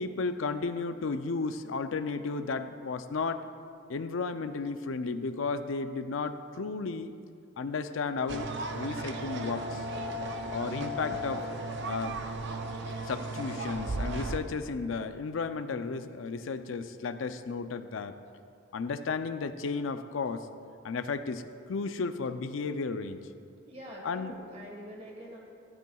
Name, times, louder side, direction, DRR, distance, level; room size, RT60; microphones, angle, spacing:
voice 1, 0.0-3.5 3.9-7.1 7.6-9.9 10.5-11.5 11.9-12.2 13.0-18.1 18.7-20.5 20.8-21.4 21.7-23.3 24.0-24.4, left 4 dB, 70° left, 10 dB, 0.5 m, -33 dB
sound 1, 8.3-14.4, right 1 dB, 55° right, 0.5 m, -35 dB
voice 2, 23.7-25.4, equal, 30° right, -2 dB, 1.5 m, -45 dB
13.5 x 12.0 x 2.3 m, 2.4 s
head